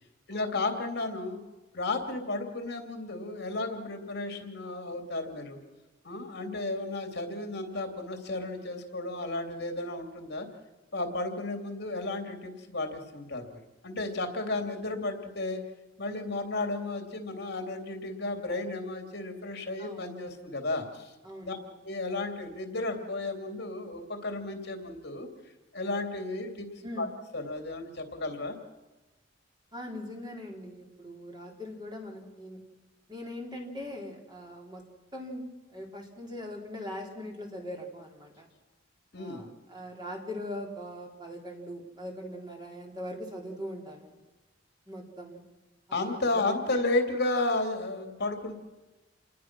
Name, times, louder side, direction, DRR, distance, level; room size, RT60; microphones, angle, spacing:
voice 1, 0.3-1.4 1.7-5.6 6.0-10.5 10.9-13.5 13.8-15.6 16.0-21.1 21.4-21.6 21.8-25.3 25.7-26.7 27.0-27.1 27.3-28.6 39.1-39.5 45.9-48.6, left 2 dB, 60° left, 5 dB, 2.9 m, -33 dB
voice 2, 19.8-20.1 21.2-21.7 26.8-27.1 29.7-32.6 33.1-34.8 35.1-35.5 35.7-38.5 39.2-44.1 44.9-45.4 45.9-46.8, left 1 dB, 25° right, 1 dB, 4.0 m, -41 dB
28.5 x 20.5 x 6.2 m, 1.1 s
head